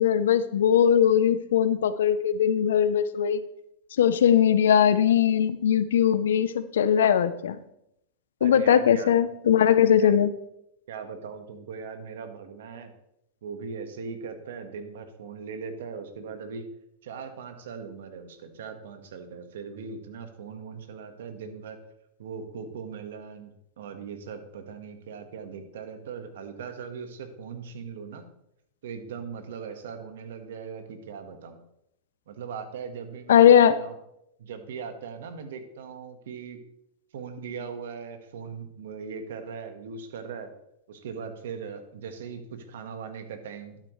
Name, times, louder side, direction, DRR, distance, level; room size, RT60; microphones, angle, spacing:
voice 1, 0.0-3.4 4.0-7.6 8.4-10.3 33.3-33.8, left 9 dB, 90° left, 14 dB, 0.7 m, -20 dB
voice 2, 8.4-9.1 9.8-10.2 10.9-12.9 13.4-16.6 17.0-21.8 22.2-23.5 23.8-28.2 28.8-31.6 32.3-33.4 33.8-33.9 34.4-36.6 37.1-40.5 40.9-43.8, right 6 dB, 80° right, 7 dB, 1.5 m, -39 dB
12.0 x 8.7 x 3.2 m, 0.78 s
supercardioid pair, 125°, 0 cm